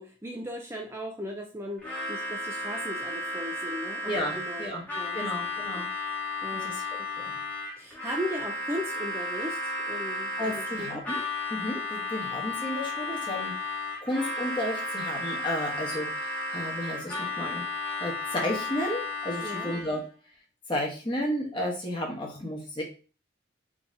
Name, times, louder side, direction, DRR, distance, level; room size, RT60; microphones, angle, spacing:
voice 1, 0.0-5.9 6.4-7.1 7.8-11.0 19.4-19.8, equal, 15° right, 1 dB, 0.4 m, -38 dB
Harmonica, 1.8-20.1, left 2 dB, 10° left, 1.2 m, -34 dB
voice 2, 4.1-4.8 5.1-5.9 6.5-6.8 7.2-7.3 10.4-11.2 11.5-13.5 14.0-17.6 18.0-20.0 20.7-22.8, left 1 dB, 25° left, -1 dB, 1.2 m, -32 dB
3.9 x 2.9 x 3.8 m, 0.36 s
head